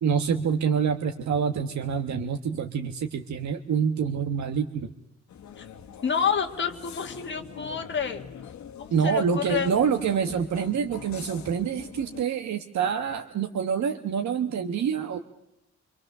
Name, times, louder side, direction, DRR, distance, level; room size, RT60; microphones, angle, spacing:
voice 1, 0.0-4.9 8.9-15.2, right 7 dB, 70° right, 6 dB, 1.2 m, -26 dB
sound 1, 5.3-12.2, left 8 dB, 75° left, 1.5 m, -44 dB
voice 2, 6.0-8.2 8.8-9.7, left 7 dB, 40° left, 4 dB, 2.0 m, -28 dB
25.5 x 25.0 x 6.7 m, 0.87 s
wide cardioid pair, 175°, 29 cm